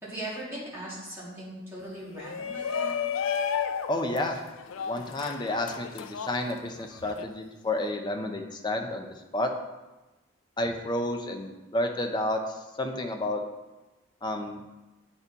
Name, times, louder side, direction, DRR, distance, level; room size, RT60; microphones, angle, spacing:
voice 1, 0.0-2.9, right 1 dB, 10° right, -9 dB, 2.3 m, -39 dB
Shout, 2.1-7.2, left 7 dB, 85° left, 0.4 m, -33 dB
voice 2, 3.9-4.4 4.8-9.1 9.3-9.5 10.6-13.4 14.2-14.6, left 1 dB, 20° left, 4 dB, 0.6 m, -30 dB
8.4 x 4.4 x 4.0 m, 1.1 s
head